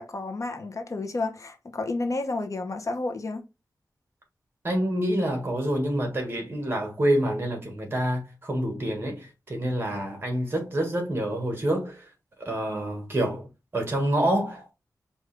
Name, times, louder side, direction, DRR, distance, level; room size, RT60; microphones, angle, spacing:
voice 1, 0.0-3.4, left 2 dB, 55° left, 0.9 m, -31 dB
voice 2, 4.6-12.1 12.4-13.5 13.7-14.7, right 1 dB, 35° right, 1.6 m, -27 dB
5.1 x 2.6 x 3.3 m
wide cardioid pair, 105°, 7 cm